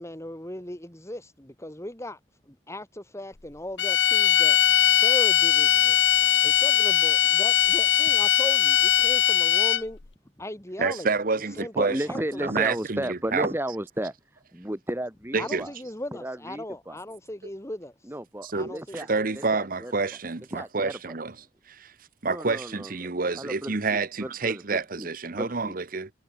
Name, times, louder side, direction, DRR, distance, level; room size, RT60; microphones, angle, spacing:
voice 1, 0.0-2.2 2.5-4.6 4.9-6.1 6.4-10.0 10.4-11.1 11.6-12.5 15.4-18.1 18.5-19.0, left 1 dB, 15° left, 3.2 m, -38 dB
sound 1, 3.8-10.0, left 11 dB, 85° left, 1.2 m, -20 dB
voice 2, 10.8-12.0 12.4-13.5 15.3-15.7 18.4-21.3 21.7-21.9 22.2-26.1, right 4 dB, 50° right, 1.1 m, -28 dB
voice 3, 11.7-14.1 14.5-15.7 16.2-17.0 18.0-19.9 20.5-21.1 22.2-25.8, right 1 dB, 15° right, 2.7 m, -34 dB
head